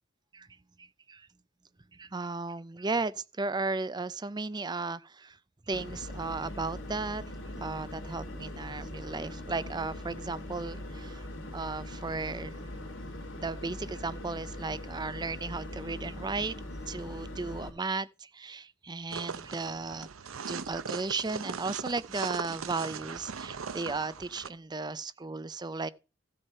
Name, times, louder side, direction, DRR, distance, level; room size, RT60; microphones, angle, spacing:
voice 1, 0.8-1.3 1.9-5.4 5.7-7.2 7.6-11.3 11.5-12.6 13.4-16.6 16.9-20.1 20.5-25.9, right 3 dB, 20° right, 0.5 m, -35 dB
sound 1, 5.7-17.7, left 1 dB, 65° left, 2.7 m, -41 dB
sound 2, 19.1-24.5, right 6 dB, 85° right, 0.8 m, -39 dB
14.5 x 6.6 x 4.2 m
head